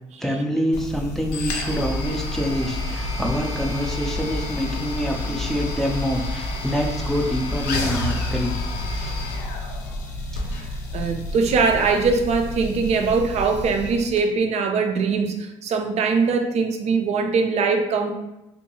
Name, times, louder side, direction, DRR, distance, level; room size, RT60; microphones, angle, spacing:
voice 1, 0.2-8.6 8.9-9.2, equal, ahead, 0 dB, 0.5 m, -26 dB
sound 1, 0.7-14.2, left 2 dB, 75° left, 0.4 m, -29 dB
voice 2, 10.9-18.1, right 4 dB, 50° right, 5 dB, 0.4 m, -21 dB
2.6 x 2.2 x 2.9 m, 0.93 s
hypercardioid pair, 55°, 14 cm